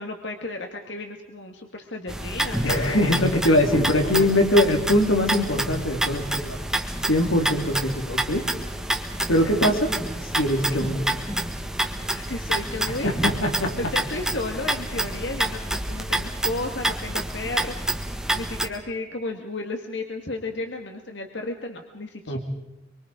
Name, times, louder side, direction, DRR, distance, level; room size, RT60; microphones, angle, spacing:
voice 1, 0.0-3.0 4.0-4.3 9.4-9.5 12.1-13.1 13.8-22.4, left 2 dB, 60° left, 4 dB, 1.9 m, -33 dB
sound 1, 2.1-18.7, right 1 dB, 5° right, 1.6 m, -28 dB
voice 2, 2.6-6.6 7.0-8.5 9.3-9.9 10.2-11.1 12.9-13.8 22.3-22.4, left 1 dB, 85° left, 3 dB, 3.5 m, -22 dB
25.5 x 24.5 x 5.1 m, 0.93 s
head